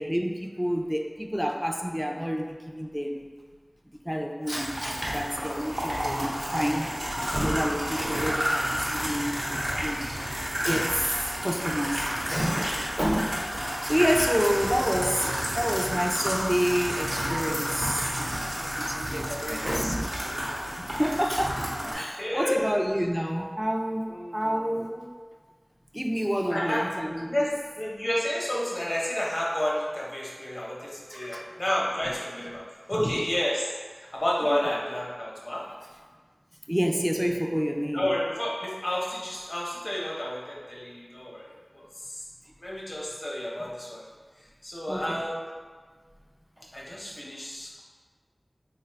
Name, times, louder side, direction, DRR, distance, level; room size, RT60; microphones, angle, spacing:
voice 1, 0.0-3.3 4.1-6.9 7.2-9.3 9.8-10.1 10.6-20.1 20.5-24.0 24.3-25.1 25.9-27.5 31.1-31.5 32.9-33.2 34.5-34.6 36.7-38.0 44.9-45.2, equal, 5° right, 2 dB, 0.3 m, -29 dB
sound 1, 4.5-21.9, equal, 75° right, 0.8 m, -31 dB
voice 2, 19.0-19.6 20.1-20.6 21.9-22.6 24.1-24.8 26.5-26.9 27.3-35.7 37.9-41.5 41.7-42.2 42.6-44.0 44.6-45.5 46.7-47.8, left 1 dB, 60° left, -4 dB, 0.8 m, -31 dB
3.7 x 2.4 x 3.2 m, 1.5 s
wide cardioid pair, 50°, 0 cm